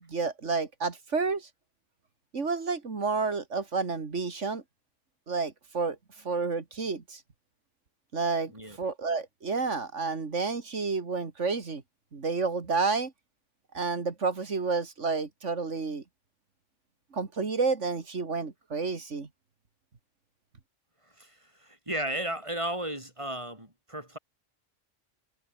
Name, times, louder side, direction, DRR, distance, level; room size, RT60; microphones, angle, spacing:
voice 1, 0.1-1.5 2.3-4.6 5.3-6.0 6.2-7.2 8.1-8.5 8.8-11.8 12.1-13.1 13.7-16.0 17.1-19.3, right 4 dB, 90° right, 2.6 m, -30 dB
voice 2, 21.0-24.2, right 1 dB, 25° right, 6.7 m, -35 dB
omnidirectional pair, 1.2 m